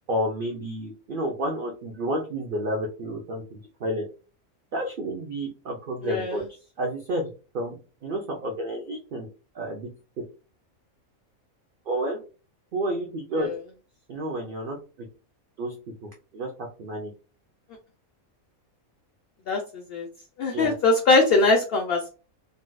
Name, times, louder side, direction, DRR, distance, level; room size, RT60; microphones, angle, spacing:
voice 1, 0.1-4.0 4.7-6.4 6.8-7.3 7.5-7.8 8.0-9.3 9.5-9.9 11.9-12.2 12.7-13.5 14.1-14.8 15.6-15.7 16.0-17.1 20.5-20.7, right 1 dB, 55° right, 1 dB, 0.6 m, -30 dB
voice 2, 6.0-6.4 13.4-13.5 19.5-19.6 19.9-20.1 20.4-22.1, left 3 dB, 60° left, 2 dB, 0.6 m, -21 dB
3.9 x 2.4 x 2.2 m, 0.34 s
omnidirectional pair, 1.5 m